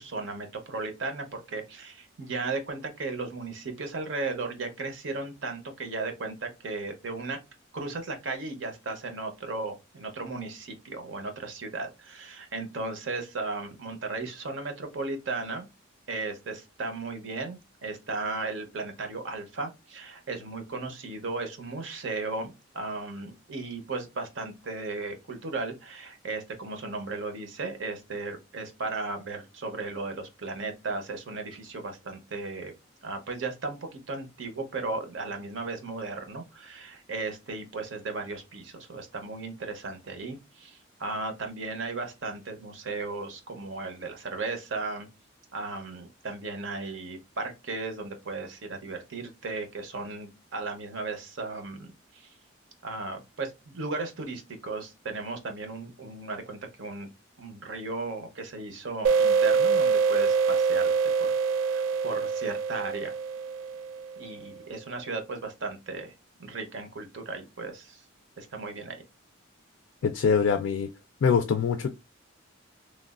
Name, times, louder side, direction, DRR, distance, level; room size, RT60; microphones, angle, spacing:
voice 1, 0.0-7.4 7.7-15.7 16.1-32.7 33.0-45.1 45.5-52.3 52.8-57.1 57.4-60.9 61.6-63.1 64.2-66.1 66.4-68.0 68.4-69.0, right 3 dB, 65° right, 0.7 m, -35 dB
sound 1, 59.0-64.4, right 5 dB, 90° right, 0.3 m, -25 dB
voice 2, 70.0-70.9 71.2-71.9, left 6 dB, 65° left, 0.3 m, -23 dB
3.1 x 2.2 x 2.3 m
head